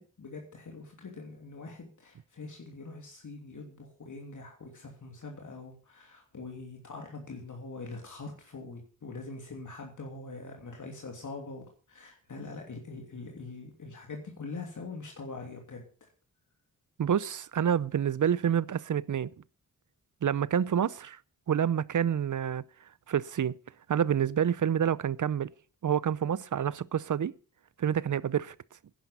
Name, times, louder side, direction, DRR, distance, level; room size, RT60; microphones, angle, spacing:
voice 1, 0.0-16.1, left 3 dB, 60° left, 3.0 m, -43 dB
voice 2, 17.0-19.3 20.2-21.2 21.5-22.6 23.1-23.5 23.9-25.5 25.8-27.3 27.8-28.5, right 8 dB, 65° right, 0.7 m, -28 dB
11.0 x 10.5 x 6.7 m
wide cardioid pair, 105°, 33 cm